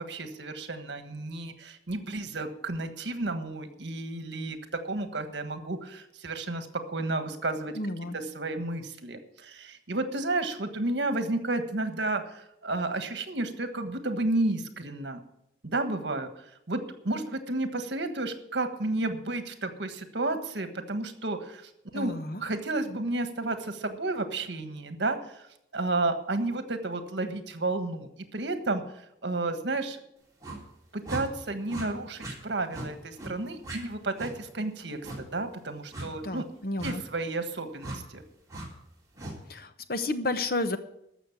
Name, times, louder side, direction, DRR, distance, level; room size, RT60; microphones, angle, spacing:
voice 1, 0.1-7.8 8.1-15.2 15.6-16.3 16.7-25.4 25.7-28.8 29.2-30.0 30.9-36.5 36.8-38.2, right 2 dB, 75° right, 8 dB, 1.5 m, -32 dB
voice 2, 7.8-8.2 21.9-22.4 36.2-37.0 39.5-40.8, left 2 dB, 55° left, 9 dB, 1.0 m, -31 dB
sound 1, 30.4-30.6 31.0-31.2 31.7-31.9 32.2-32.4 32.7-32.9 33.2-33.3 33.6-33.8 34.2-34.3 35.0-35.2 35.9-36.1 36.8-36.9 37.8-38.0 38.5-38.7 39.2-39.4, right 1 dB, 20° right, 3.3 m, -38 dB
14.0 x 6.5 x 8.4 m, 0.78 s
head